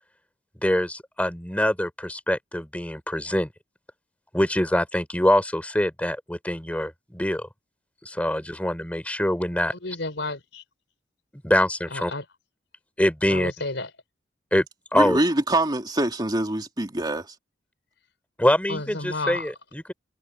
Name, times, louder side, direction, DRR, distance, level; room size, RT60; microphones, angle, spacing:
voice 1, 0.6-3.5 4.3-7.5 8.0-10.0 11.4-12.1 13.0-13.5 14.5-14.6 14.9-15.2 18.4-19.9, left 1 dB, 10° left, 3.8 m, -24 dB
voice 2, 9.8-10.6 11.9-12.2 13.3-13.9 18.7-19.5, left 2 dB, 80° left, 4.0 m, -31 dB
voice 3, 14.9-17.3, right 1 dB, 25° right, 2.8 m, -24 dB
open air
head